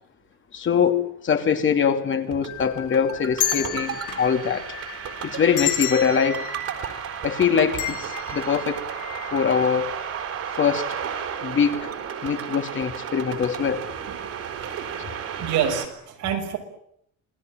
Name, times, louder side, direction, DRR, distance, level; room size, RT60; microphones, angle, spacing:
voice 1, 0.5-4.7 5.2-6.4 7.2-8.8 9.3-9.9 10.6-10.9 11.4-11.9 12.2-13.9, left 7 dB, 40° left, 7 dB, 2.9 m, -23 dB
sound 1, 2.1-15.9, right 8 dB, 55° right, 4.2 m, -33 dB
sound 2, 2.5-9.6 10.0-10.1 11.0-11.3 11.7-11.9, left 9 dB, 90° left, 3.8 m, -32 dB
voice 2, 15.4-16.6, right 8 dB, 85° right, 4 dB, 6.6 m, -27 dB
28.0 x 20.0 x 9.2 m, 0.71 s
cardioid pair, 145°, 29 cm